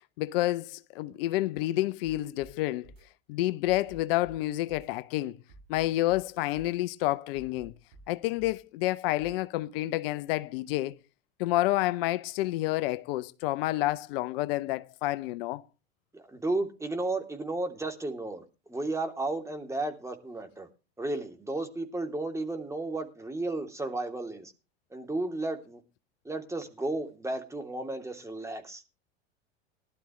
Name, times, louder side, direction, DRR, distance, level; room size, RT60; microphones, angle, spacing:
voice 1, 0.0-2.9 3.3-5.4 5.7-7.7 8.1-11.0 11.4-15.6, left 16 dB, 65° left, 0.8 m, -29 dB
sound 1, 2.0-2.5 2.8-3.0 3.6-4.4 4.7-4.9 5.5-6.2 6.5-6.7 7.3-8.1 8.4-8.6 9.2-9.3, right 2 dB, 85° right, 7.7 m, -52 dB
voice 2, 16.1-18.4 18.7-20.7 21.0-24.5 24.9-25.8 26.2-28.8, right 2 dB, 10° right, 3.1 m, -33 dB
19.5 x 12.0 x 3.2 m
hypercardioid pair, 90°, 31 cm